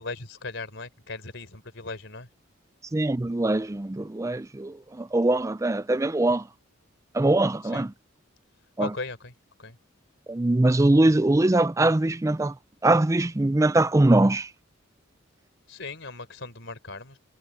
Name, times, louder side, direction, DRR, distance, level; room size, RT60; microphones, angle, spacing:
voice 1, 0.0-2.3 7.7-7.8 8.8-9.3 9.6-9.7 15.7-17.1, left 3 dB, 60° left, 4.1 m, -37 dB
voice 2, 2.9-6.5 7.1-7.9 8.8-8.9 10.3-12.5 12.8-14.5, right 2 dB, 15° right, 0.4 m, -22 dB
head